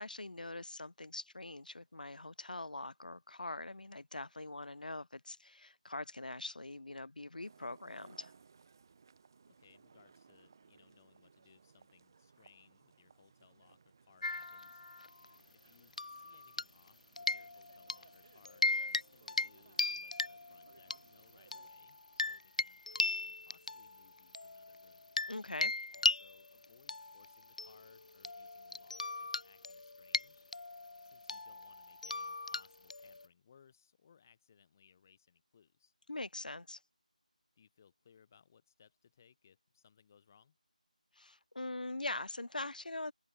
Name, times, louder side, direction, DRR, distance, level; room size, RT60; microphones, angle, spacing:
voice 1, 0.0-8.3 25.3-25.7 36.1-36.8 41.2-43.1, left 2 dB, 85° left, 1.1 m, -43 dB
sound 1, 7.4-21.7, right 5 dB, 25° right, 1.3 m, -64 dB
voice 2, 9.5-14.8 15.5-25.1 25.9-30.5 31.0-35.9 37.6-40.6, left 7 dB, 20° left, 7.8 m, -67 dB
sound 2, 14.2-15.3 15.9-16.9 17.2-18.0 18.4-19.0 19.3-19.5 19.8-21.0 21.5-25.3 25.6-33.3, left 3 dB, 60° left, 0.6 m, -37 dB
open air
figure-of-eight pair, 175°, 4 cm